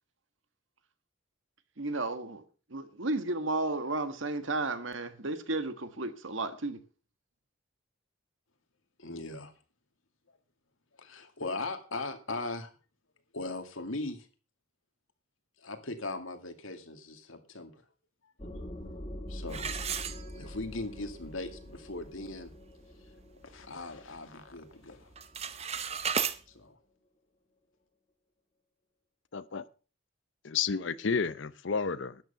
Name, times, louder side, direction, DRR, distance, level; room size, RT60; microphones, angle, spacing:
voice 1, 1.8-2.4 2.7-6.8, right 2 dB, 70° right, 1.5 m, -33 dB
voice 2, 9.0-9.5 11.0-12.7 13.3-14.3 15.6-17.8 18.6-18.7 19.3-19.8 20.3-22.5 23.4-25.1 26.5-26.8, left 2 dB, 80° left, 2.2 m, -39 dB
sound 1, 18.4-25.8, equal, 25° left, 1.9 m, -45 dB
sound 2, 19.5-20.8 21.2-21.3 21.9-22.0 22.4-22.7 23.1-24.2 24.5-24.8 25.1-26.4, right 7 dB, 30° right, 0.8 m, -35 dB
voice 3, 29.3-29.7 30.4-32.2, left 5 dB, 65° left, 0.6 m, -31 dB
12.5 x 9.5 x 5.7 m
head